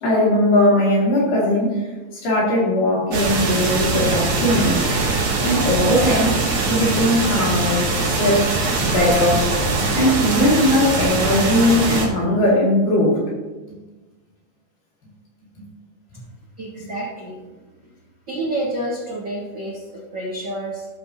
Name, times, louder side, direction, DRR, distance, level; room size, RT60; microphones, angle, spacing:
voice 1, 0.0-1.9 2.2-5.0 5.4-8.5 8.8-9.5 9.9-13.2 16.8-16.9, left 1 dB, 55° left, -6 dB, 3.8 m, -19 dB
sound 1, 3.1-12.1, right 3 dB, 55° right, 2.8 m, -22 dB
voice 2, 16.6-17.6 18.3-20.9, right 1 dB, 75° right, -5 dB, 1.0 m, -29 dB
14.0 x 7.0 x 2.9 m, 1.2 s
omnidirectional pair, 4.8 m